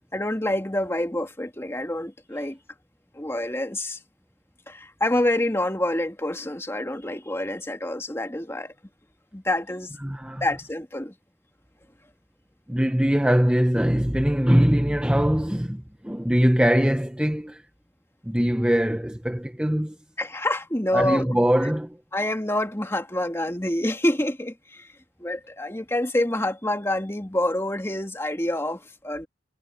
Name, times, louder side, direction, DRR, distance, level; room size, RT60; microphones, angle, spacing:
voice 1, 0.1-2.6 3.1-4.0 4.7-8.7 9.3-9.9 10.4-11.1 20.2-21.4 22.1-24.9 25.2-29.3, left 1 dB, 15° left, 2.2 m, -27 dB
voice 2, 10.0-10.4 12.7-17.6 18.3-20.0 20.9-22.0, equal, 5° right, 0.8 m, -22 dB
head